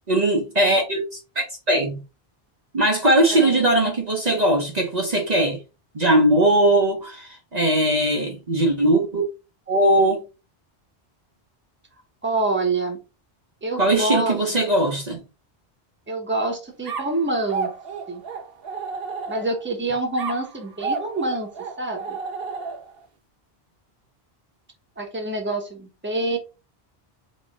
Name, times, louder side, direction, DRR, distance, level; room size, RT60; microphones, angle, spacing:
voice 1, 0.1-1.0 1.4-2.0 2.7-5.6 5.9-9.3 9.7-10.2 13.8-15.2, right 1 dB, 45° right, 1.0 m, -20 dB
voice 2, 3.3-3.7 12.2-13.0 13.6-14.4 16.1-17.7 18.1-18.2 19.3-22.2 25.0-26.4, right 2 dB, 10° right, 1.1 m, -26 dB
sound 1, 16.8-19.7 20.2-23.0, right 5 dB, 70° right, 1.1 m, -32 dB
4.2 x 2.9 x 3.6 m
omnidirectional pair, 1.0 m